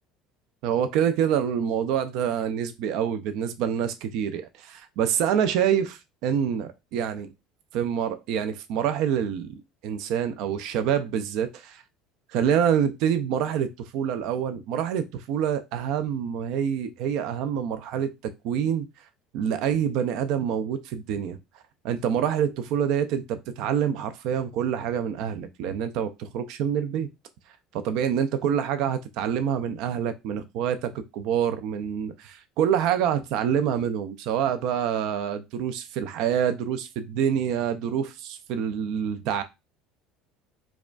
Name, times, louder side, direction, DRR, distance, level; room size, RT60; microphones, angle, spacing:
voice 1, 0.6-7.3 7.7-11.8 12.3-18.9 19.3-21.4 21.8-27.1 27.7-39.4, right 8 dB, 70° right, 0.3 m, -26 dB
4.7 x 2.3 x 2.3 m
supercardioid pair, 115°, 0 cm